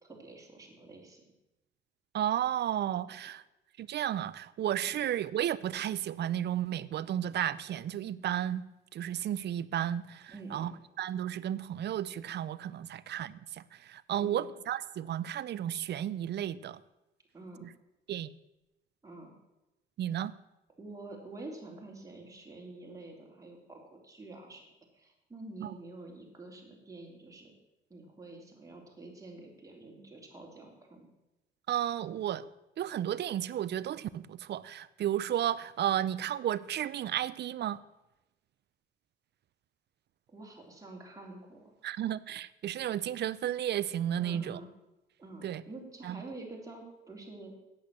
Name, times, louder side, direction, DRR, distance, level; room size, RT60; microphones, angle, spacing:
voice 1, 0.0-1.2 3.1-3.2 4.9-5.0 10.3-10.7 14.1-14.5 17.3-17.7 19.0-19.3 20.8-24.7 24.9-27.5 27.9-31.1 40.3-41.7 44.2-44.7 45.2-47.5, right 2 dB, 15° right, -1 dB, 3.2 m, -48 dB
voice 2, 2.1-3.4 3.8-8.6 8.9-10.7 11.0-16.8 17.6-17.7 18.1-18.3 20.0-20.3 25.6-25.7 31.7-32.5 32.8-37.8 41.8-44.6 45.4-45.6 46.0-46.2, right 11 dB, 60° right, 18 dB, 0.5 m, -33 dB
8.5 x 7.8 x 8.3 m, 0.96 s
cardioid pair, 90°, 20 cm